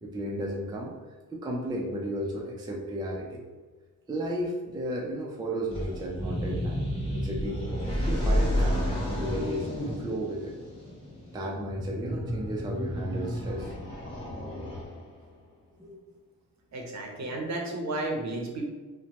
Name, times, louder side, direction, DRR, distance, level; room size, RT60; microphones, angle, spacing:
voice 1, 0.0-3.4 4.1-6.8 7.1-7.6 8.0-10.5 11.3-13.7 15.8-16.0, right 1 dB, 10° right, -2 dB, 0.4 m, -34 dB
sound 1, 5.7-15.2, equal, 15° left, 1.2 m, -31 dB
voice 2, 16.7-18.7, right 2 dB, 50° right, 1 dB, 0.6 m, -32 dB
2.9 x 2.1 x 2.8 m, 1.3 s
cardioid pair, 105°, 36 cm